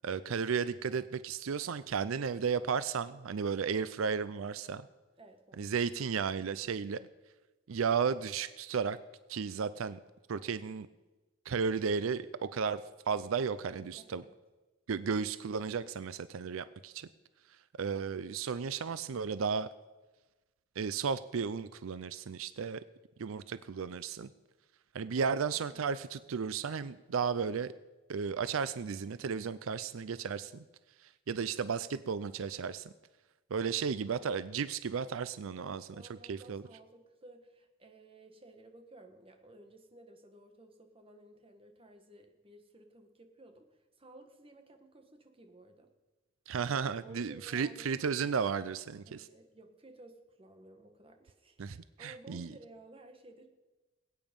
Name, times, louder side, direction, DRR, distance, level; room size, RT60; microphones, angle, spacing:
voice 1, 0.0-4.9 5.6-7.0 7.7-9.0 9.3-10.0 10.3-10.9 11.5-14.2 14.9-17.1 17.8-19.7 20.8-22.8 23.2-24.3 24.9-27.7 28.1-30.6 31.0-32.9 33.5-35.9 36.3-36.6 46.5-49.3 51.6-52.5, right 6 dB, 85° right, 15 dB, 0.5 m, -34 dB
voice 2, 5.2-5.7 14.0-14.3 25.2-25.8 35.6-45.9 47.0-47.9 49.1-53.5, right 2 dB, 25° right, 5 dB, 1.6 m, -56 dB
21.0 x 9.1 x 5.3 m, 1.2 s
head